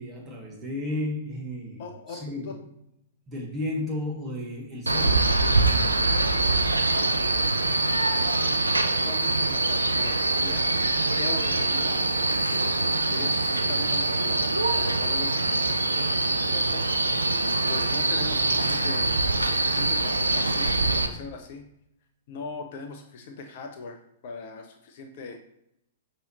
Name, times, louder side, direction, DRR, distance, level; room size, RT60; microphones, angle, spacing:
voice 1, 0.0-2.6 3.3-5.3, left 1 dB, 20° right, -2 dB, 1.3 m, -33 dB
voice 2, 1.8-2.6 8.8-10.7 11.2-12.1 13.1-16.8 17.7-21.6 22.3-25.4, left 4 dB, 45° left, 5 dB, 0.5 m, -40 dB
Male speech man speaking, 4.9-21.1, right 2 dB, 80° right, 0.4 m, -24 dB
5.4 x 3.0 x 2.9 m, 0.79 s
figure-of-eight pair, 110°, 0 cm